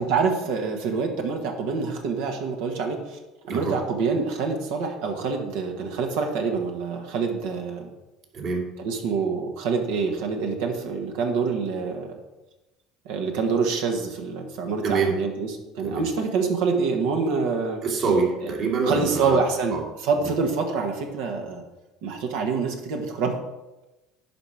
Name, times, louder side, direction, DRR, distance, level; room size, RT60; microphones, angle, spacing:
voice 1, 0.0-3.2 3.5-7.9 8.8-12.2 13.0-17.8 18.4-18.5 18.8-21.6 22.0-23.3, right 4 dB, 80° right, 3 dB, 1.5 m, -26 dB
voice 2, 8.3-8.7 14.8-15.2 15.8-16.1 17.8-19.4 19.7-19.8 20.2-20.3, right 5 dB, 55° right, -1 dB, 2.5 m, -25 dB
11.0 x 4.6 x 4.9 m, 1.0 s
supercardioid pair, 85°, 0 cm